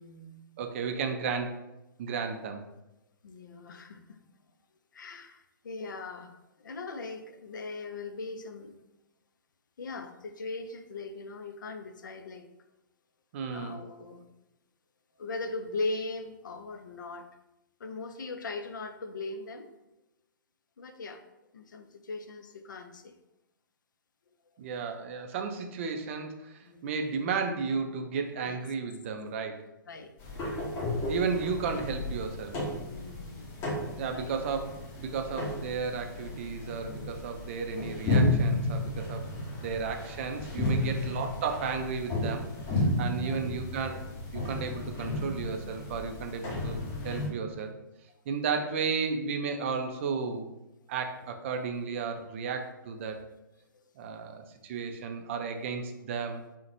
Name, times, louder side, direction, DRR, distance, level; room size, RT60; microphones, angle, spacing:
voice 1, 0.0-0.4 3.2-4.2 4.9-8.8 9.8-12.5 13.5-14.3 15.2-17.3 17.8-19.7 20.8-21.2 21.5-23.1 26.6-27.0 28.4-28.6 29.9-30.1 32.9-33.6 34.0-34.4 40.9-41.1 43.2-43.4 48.5-48.8, left 3 dB, 65° left, 7 dB, 0.4 m, -39 dB
voice 2, 0.6-1.5 2.0-2.6 13.3-13.8 24.6-29.6 31.1-32.6 33.9-39.3 39.6-42.5 42.7-44.0 44.3-47.7 48.3-50.5 50.9-53.2 54.0-56.4, right 5 dB, 35° right, 5 dB, 0.4 m, -33 dB
sound 1, 30.2-47.3, left 1 dB, 25° left, 1.3 m, -33 dB
3.8 x 2.1 x 2.9 m, 0.93 s
figure-of-eight pair, 120°, 11 cm